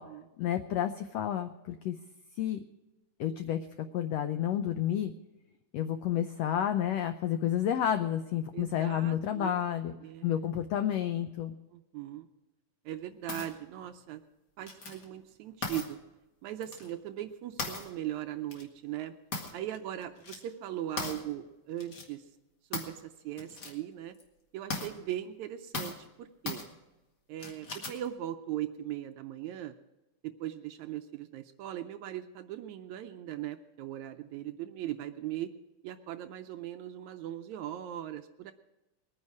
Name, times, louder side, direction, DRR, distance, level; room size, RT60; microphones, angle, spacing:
voice 1, 0.4-2.0 2.4-2.6 3.2-5.1 5.7-9.9 10.2-11.5, left 10 dB, 85° left, 8 dB, 1.4 m, -30 dB
voice 2, 8.5-9.6 10.0-10.3 11.7-12.3 12.9-14.2 14.6-16.0 16.4-19.2 19.5-22.2 22.7-24.2 24.5-26.6 27.3-29.8 30.2-35.5 35.8-38.5, right 12 dB, 75° right, 8 dB, 1.8 m, -39 dB
sound 1, 13.3-13.5 14.7-15.0 15.6-15.9 16.6-16.9 17.6-17.9 18.5-18.6 19.3-19.8 20.0-20.4 21.0-21.2 21.8-22.0 22.7-23.0 23.4-23.7 24.1-24.2 24.7-24.9 25.7-26.0 26.5-26.7 27.4-28.1, left 3 dB, 40° left, 1.9 m, -37 dB
21.0 x 9.7 x 4.8 m, 1.0 s
omnidirectional pair, 3.7 m